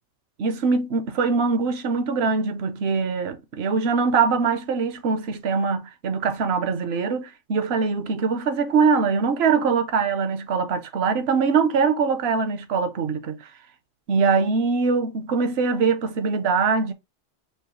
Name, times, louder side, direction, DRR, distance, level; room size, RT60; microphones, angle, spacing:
voice 1, 0.4-13.4 14.1-16.9, right 5 dB, 65° right, 0.9 m, -22 dB
5.4 x 2.3 x 3.0 m
omnidirectional pair, 1.2 m